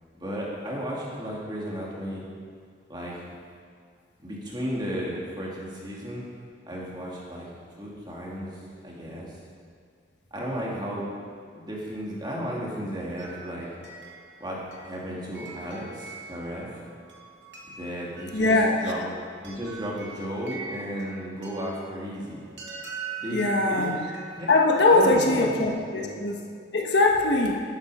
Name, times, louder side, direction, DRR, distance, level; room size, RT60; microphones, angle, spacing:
voice 1, 0.2-2.2 2.9-3.2 4.2-6.2 6.7-7.5 7.8-8.5 8.8-9.3 10.3-11.0 11.4-13.7 14.4-16.7 17.8-18.5 18.8-19.0 19.4-22.5 23.2-23.9 24.4-24.5 24.9-26.2, equal, 20° right, -4 dB, 2.6 m, -34 dB
sound 1, 13.2-25.8, right 6 dB, 70° right, 2.3 m, -42 dB
voice 2, 18.3-19.0 23.3-23.9 24.5-26.4 26.7-27.6, left 2 dB, 60° left, 1 dB, 1.4 m, -21 dB
13.0 x 12.0 x 5.0 m, 2.2 s
head